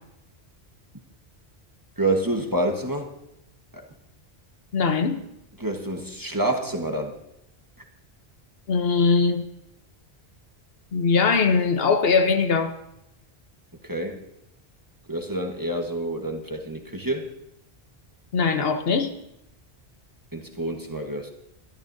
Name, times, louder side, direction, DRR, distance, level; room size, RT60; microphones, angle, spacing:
voice 1, 2.0-3.1 3.7-3.9 5.6-7.2 13.8-14.2 15.1-17.3 20.3-21.3, right 1 dB, 20° right, 2 dB, 1.3 m, -28 dB
voice 2, 4.7-5.2 8.7-9.4 10.9-12.7 18.3-19.1, left 5 dB, 70° left, 8 dB, 1.1 m, -21 dB
22.5 x 12.0 x 2.7 m, 0.83 s
omnidirectional pair, 1.1 m